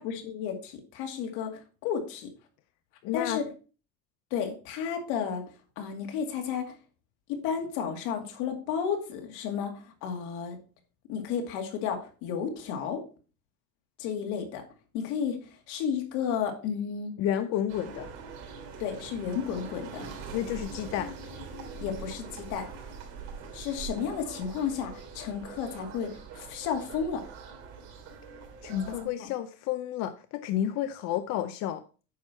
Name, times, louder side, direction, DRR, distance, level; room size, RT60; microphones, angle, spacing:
voice 1, 0.0-1.5 1.8-2.3 3.1-3.4 4.3-5.4 5.8-6.7 7.3-10.6 11.1-13.0 14.0-14.6 14.9-15.4 15.7-17.1 18.8-20.0 21.8-22.7 23.5-27.2 28.7-29.3, left 7 dB, 85° left, 4 dB, 2.3 m, -32 dB
voice 2, 3.0-3.4 17.2-18.1 20.3-21.1 28.6-31.8, left 11 dB, 60° left, 10 dB, 0.6 m, -31 dB
sound 1, 17.7-29.1, right 5 dB, 60° right, 3.3 m, -43 dB
9.4 x 6.1 x 4.4 m, 0.35 s
cardioid pair, 175°, 30 cm